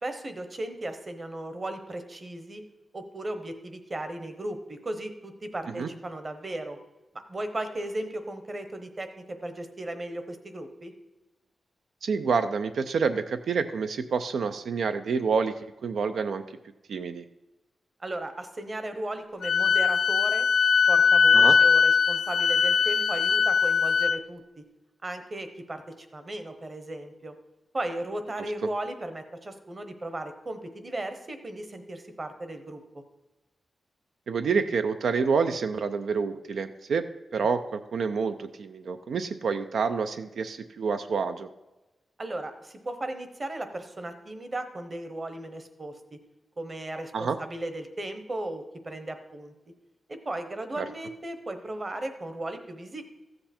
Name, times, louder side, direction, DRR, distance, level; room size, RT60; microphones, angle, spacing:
voice 1, 0.0-2.6 2.9-6.8 7.3-10.9 18.0-20.5 20.9-24.6 25.0-27.3 27.7-32.8 42.2-46.2 46.6-49.5 50.1-53.0, right 1 dB, 25° right, 8 dB, 1.0 m, -36 dB
voice 2, 12.0-15.5 15.8-16.4 16.9-17.2 21.3-21.6 34.3-37.0 37.3-41.5 47.1-47.4 50.8-50.9, right 5 dB, 85° right, 9 dB, 0.5 m, -28 dB
Wind instrument woodwind instrument, 19.4-24.2, left 6 dB, 70° left, 0.3 m, -21 dB
14.5 x 7.8 x 4.3 m, 1.1 s
wide cardioid pair, 170°, 0 cm